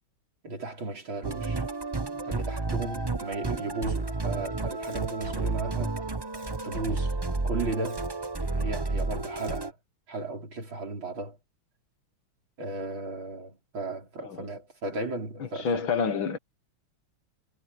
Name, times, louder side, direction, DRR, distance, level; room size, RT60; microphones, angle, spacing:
voice 1, 0.4-1.7 2.3-6.0 6.6-7.2 7.4-8.1 8.5-9.8 10.1-11.4 12.6-15.8, right 3 dB, 65° right, 6.1 m, -35 dB
Musical instrument, 1.2-9.7, right 3 dB, 35° right, 0.4 m, -31 dB
voice 2, 15.6-16.4, left 5 dB, 70° left, 2.3 m, -28 dB
omnidirectional pair, 2.3 m